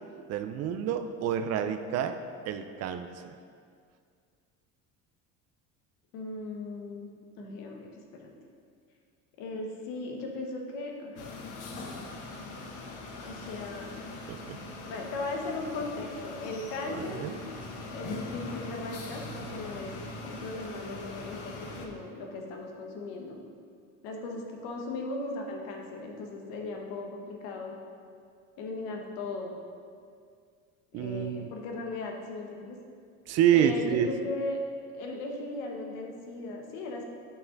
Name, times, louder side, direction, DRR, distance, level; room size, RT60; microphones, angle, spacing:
voice 1, 0.1-2.2 2.5-3.3 14.3-14.6 16.9-17.4 30.9-31.5 33.3-34.1, right 9 dB, 50° right, 8 dB, 0.5 m, -28 dB
voice 2, 6.1-7.1 7.4-8.3 9.4-11.3 13.2-13.9 14.9-17.2 17.9-19.9 20.2-23.4 24.0-27.7 28.6-29.5 30.9-32.8 33.5-34.6 34.9-37.0, left 2 dB, 90° left, 1 dB, 1.3 m, -37 dB
sound 1, 11.2-21.9, left 2 dB, 65° left, 1.2 m, -41 dB
9.2 x 5.7 x 3.9 m, 2.2 s
cardioid pair, 145°, 33 cm